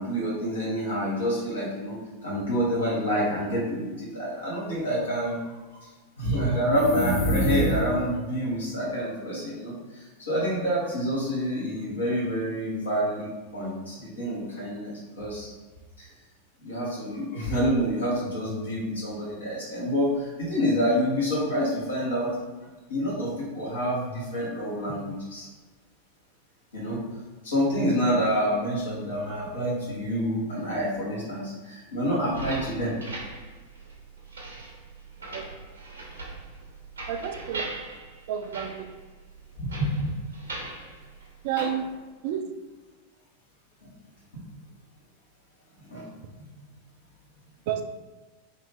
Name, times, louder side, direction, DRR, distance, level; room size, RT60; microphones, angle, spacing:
voice 1, 0.0-5.5 5.8-5.9 6.2-15.5 16.0-16.1 16.6-22.3 22.9-25.5 26.7-27.0 27.4-32.9 39.6-40.1 41.6-41.7 44.3-44.4 45.8-46.1, equal, 70° left, -7 dB, 1.5 m, -28 dB
sound 1, 6.6-8.2, left 1 dB, 50° left, 0.6 m, -26 dB
sound 2, 32.2-41.9, right 2 dB, 70° right, 0.7 m, -40 dB
voice 2, 37.1-37.6 38.3-38.7 41.4-41.8 42.2-42.4 47.7-47.8, right 10 dB, 50° right, 7 dB, 0.3 m, -29 dB
3.1 x 2.7 x 3.4 m, 1.3 s
figure-of-eight pair, 90°, 0 cm